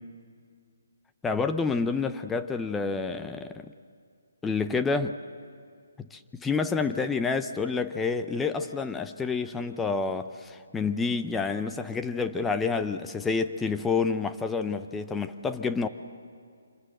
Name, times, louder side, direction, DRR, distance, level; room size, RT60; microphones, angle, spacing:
voice 1, 1.2-3.7 4.4-5.2 6.0-15.9, left 4 dB, 5° left, 9 dB, 0.5 m, -28 dB
26.0 x 21.0 x 7.7 m, 2.2 s
hypercardioid pair, 160°, 0 cm